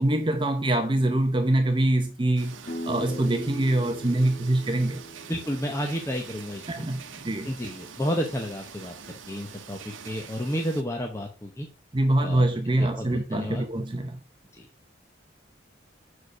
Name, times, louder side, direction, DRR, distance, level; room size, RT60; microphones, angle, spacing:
voice 1, 0.0-2.6 2.9-5.0 6.7-7.5 11.9-14.2, right 1 dB, 25° right, 0.7 m, -24 dB
sound 1, 2.4-10.8, right 6 dB, 80° right, 0.9 m, -45 dB
sound 2, 2.7-8.2, equal, 45° left, 1.6 m, -41 dB
voice 2, 5.3-6.8 7.4-8.9 9.3-11.7 12.2-12.4 12.8-13.7 14.5-14.7, equal, 15° left, 0.8 m, -31 dB
6.5 x 4.8 x 6.0 m
head